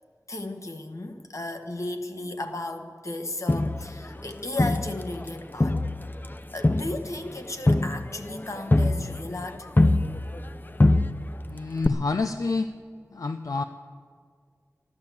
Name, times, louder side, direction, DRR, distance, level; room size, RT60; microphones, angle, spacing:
voice 1, 0.3-5.8 6.5-9.7, left 2 dB, 60° left, 5 dB, 1.5 m, -35 dB
Crowd, 3.5-5.3 5.6-10.5 10.8-11.5 11.8-11.9, left 2 dB, 35° left, 0.6 m, -24 dB
voice 2, 11.5-12.7 13.1-13.6, left 3 dB, 85° left, 7 dB, 0.5 m, -28 dB
14.0 x 12.0 x 8.2 m, 2.1 s
wide cardioid pair, 45°, 6 cm